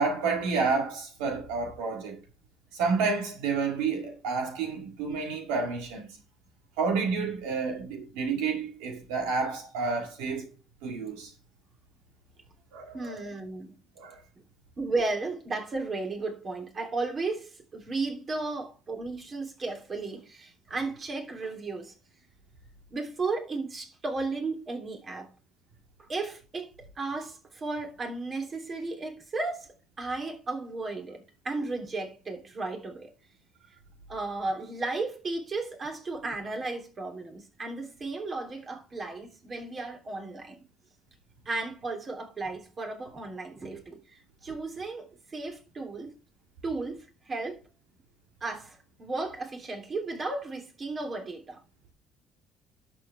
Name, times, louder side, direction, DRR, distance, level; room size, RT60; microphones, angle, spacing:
voice 1, 0.0-2.2 2.7-6.1 6.8-10.5 10.8-11.3 12.7-13.3 14.0-14.2, right 4 dB, 90° right, 2.0 m, -30 dB
voice 2, 12.9-13.7 14.8-21.9 22.9-25.3 26.0-33.1 34.1-40.6 41.4-46.1 46.6-47.6 48.4-51.6, right 3 dB, 40° right, 3.2 m, -34 dB
11.0 x 7.3 x 3.5 m
supercardioid pair, 80°, 0 cm